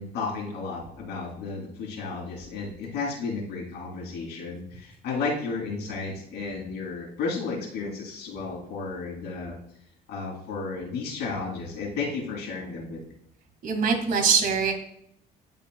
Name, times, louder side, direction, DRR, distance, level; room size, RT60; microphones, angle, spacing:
voice 1, 0.0-9.6 10.1-13.0, left 4 dB, 85° left, -4 dB, 2.6 m, -33 dB
voice 2, 13.6-14.7, right 5 dB, 55° right, 3 dB, 1.9 m, -23 dB
14.5 x 5.1 x 2.3 m, 0.72 s
cardioid pair, 110°, 17 cm